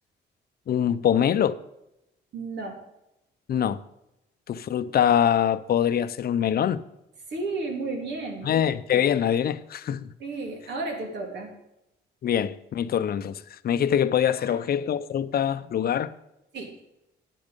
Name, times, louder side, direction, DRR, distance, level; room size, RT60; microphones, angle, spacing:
voice 1, 0.7-1.6 3.5-3.8 4.5-6.8 8.4-10.1 12.2-16.1, left 9 dB, 55° left, 0.7 m, -24 dB
voice 2, 2.3-2.8 7.3-8.5 10.2-11.5 14.4-14.6 16.5-16.7, right 3 dB, 75° right, 3.4 m, -33 dB
11.0 x 9.4 x 5.3 m
cardioid pair, 130°, 18 cm